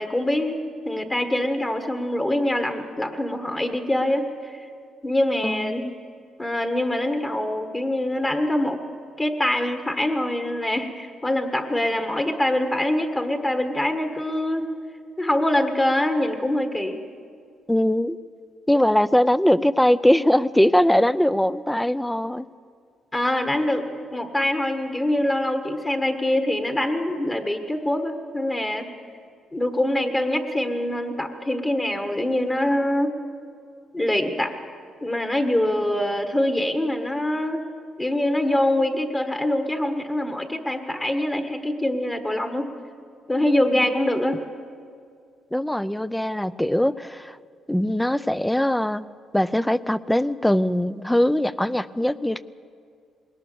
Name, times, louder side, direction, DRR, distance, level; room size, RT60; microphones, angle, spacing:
voice 1, 0.0-4.6 5.0-5.9 6.4-8.8 9.2-14.7 15.2-17.0 23.1-28.9 29.5-33.1 33.9-34.5 35.0-37.6 38.0-42.7 43.3-44.4, left 1 dB, 20° left, 5 dB, 1.5 m, -24 dB
voice 2, 5.4-6.0 17.7-18.2 18.7-22.5 45.5-47.4 47.7-49.0 49.3-52.4, left 1 dB, 5° left, 16 dB, 0.5 m, -21 dB
21.0 x 18.0 x 7.0 m, 2.3 s
cardioid pair, 90°, 0 cm